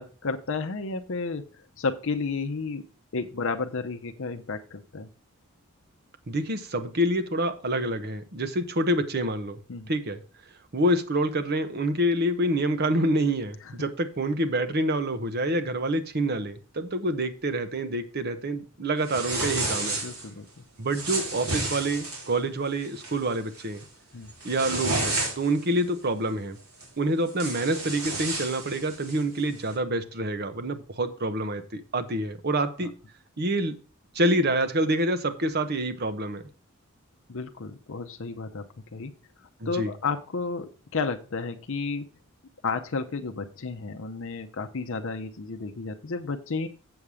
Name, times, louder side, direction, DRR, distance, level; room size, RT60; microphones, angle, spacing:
voice 1, 0.0-1.4 1.8-2.8 3.1-5.1 9.7-9.9 20.0-20.5 24.1-24.3 32.8-32.9 37.3-38.6 38.9-39.1 39.7-42.1 42.6-46.7, left 4 dB, 65° left, 0.7 m, -32 dB
voice 2, 6.3-9.6 9.9-10.2 10.7-20.0 20.8-23.8 24.4-26.6 27.0-32.9 33.4-33.8 34.1-36.4 39.6-39.9, right 1 dB, 50° right, 0.9 m, -27 dB
sound 1, 19.0-20.3 20.9-22.3 22.8-23.1 23.5-23.8 24.2-25.6 26.8-26.9 27.3-29.2, right 2 dB, 85° right, 3.7 m, -31 dB
7.8 x 7.1 x 4.8 m
head